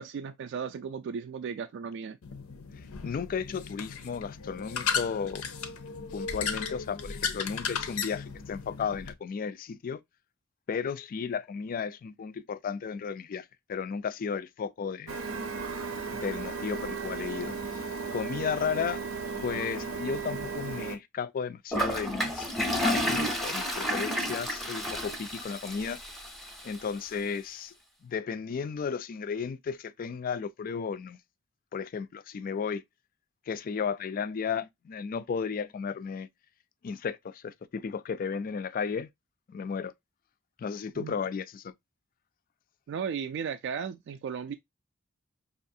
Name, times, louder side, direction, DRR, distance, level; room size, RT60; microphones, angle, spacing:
voice 1, 0.0-2.2 41.0-41.1 42.9-44.5, right 6 dB, 60° right, 0.3 m, -35 dB
sound 1, 2.2-9.1, left 6 dB, 85° left, 0.6 m, -35 dB
voice 2, 2.8-5.5 6.1-10.0 10.7-15.2 16.1-17.8 18.1-19.0 19.4-26.0 26.6-27.7 28.0-31.2 31.7-32.8 33.5-36.3 36.8-39.1 39.5-39.9 40.6-41.7, left 6 dB, 40° left, 0.3 m, -34 dB
Printer, 15.1-21.0, right 5 dB, 90° right, 0.7 m, -35 dB
Toilet flush, 21.7-26.8, equal, ahead, 0.6 m, -31 dB
5.3 x 2.4 x 2.6 m
head